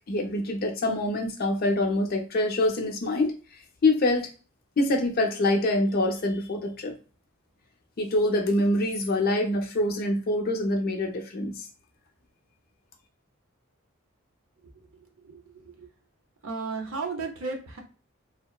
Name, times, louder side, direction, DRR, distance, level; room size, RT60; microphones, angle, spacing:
voice 1, 0.1-3.3 3.8-4.3 4.8-6.9 8.0-11.7, left 1 dB, 45° left, 3 dB, 0.5 m, -25 dB
voice 2, 15.2-15.9 16.4-17.8, right 4 dB, 70° right, 3 dB, 0.7 m, -34 dB
2.8 x 2.0 x 2.2 m, 0.36 s
head